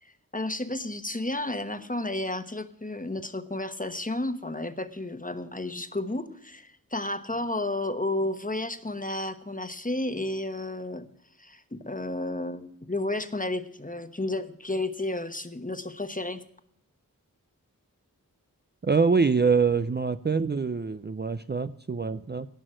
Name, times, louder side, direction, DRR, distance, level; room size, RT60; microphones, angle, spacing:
voice 1, 0.0-11.1 11.4-16.4, left 2 dB, 25° left, 9 dB, 1.1 m, -32 dB
voice 2, 18.8-22.5, right 5 dB, 30° right, 11 dB, 0.5 m, -25 dB
17.5 x 6.2 x 7.7 m, 0.72 s
wide cardioid pair, 55°, 34 cm